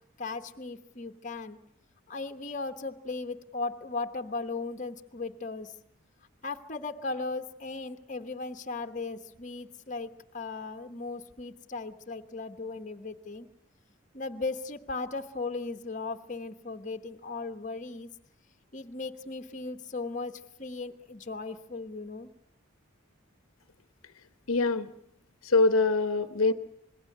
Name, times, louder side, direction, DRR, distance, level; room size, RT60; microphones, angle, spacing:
voice 1, 0.2-1.6 2.1-5.7 6.4-13.5 14.1-18.1 18.7-22.3, left 3 dB, 35° left, 7 dB, 1.1 m, -37 dB
voice 2, 24.5-24.9 25.4-26.5, left 3 dB, 80° left, 11 dB, 1.0 m, -24 dB
26.0 x 20.5 x 6.7 m, 0.75 s
head